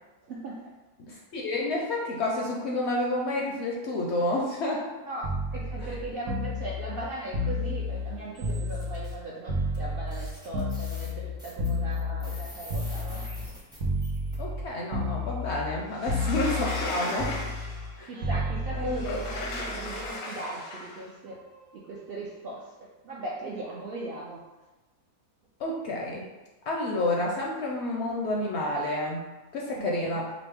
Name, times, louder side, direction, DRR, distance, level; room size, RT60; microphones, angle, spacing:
voice 1, 0.2-0.7 5.0-5.2 5.5-13.2 18.1-21.4 21.7-24.4 29.7-30.2, right 2 dB, 65° right, -5 dB, 0.6 m, -39 dB
voice 2, 1.0-4.9 5.8-5.9 14.4-17.4 18.0-18.1 18.8-19.2 25.6-26.3 26.7-30.3, left 1 dB, 65° left, -2 dB, 0.7 m, -30 dB
sound 1, 5.2-9.2 9.5-13.5 13.8-14.6 14.9-20.1 21.3-21.5, left 1 dB, 90° right, 1.2 m, -31 dB
sound 2, 8.3-9.1 9.7-9.8 10.1-14.3, equal, 5° right, 0.5 m, -47 dB
Sliding door, 16.0-17.9 18.8-21.0, left 2 dB, 90° left, 1.3 m, -36 dB
5.0 x 2.0 x 3.4 m, 1.1 s
omnidirectional pair, 1.5 m